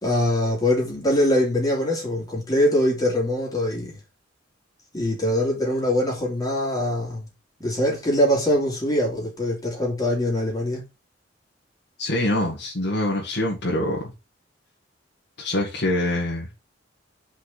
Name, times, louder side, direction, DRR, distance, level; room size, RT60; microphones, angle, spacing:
voice 1, 0.0-3.9 4.9-7.3 7.6-10.8, left 1 dB, 20° left, 3.2 m, -23 dB
voice 2, 12.0-14.1 15.4-16.5, left 1 dB, 65° left, 2.1 m, -25 dB
5.4 x 5.1 x 5.8 m
head